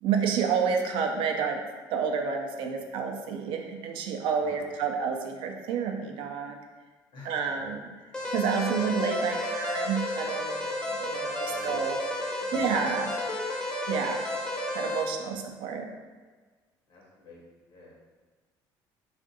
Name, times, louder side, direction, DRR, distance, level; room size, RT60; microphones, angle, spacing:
voice 1, 0.0-1.6 1.9-6.6 7.2-7.8 8.3-12.0 12.5-13.1 13.9-14.2 14.7-15.9, right 6 dB, 75° right, 3 dB, 0.4 m, -29 dB
voice 2, 4.3-4.7 7.1-7.6 11.4-11.8 12.4-12.6 15.2-15.4 15.8-15.9 16.9-17.4 17.7-17.9, left 2 dB, 65° left, -3 dB, 1.0 m, -50 dB
sound 1, 8.1-15.0, left 1 dB, 10° left, 0.5 m, -32 dB
3.4 x 2.4 x 2.6 m, 1.4 s
cardioid pair, 110°, 9 cm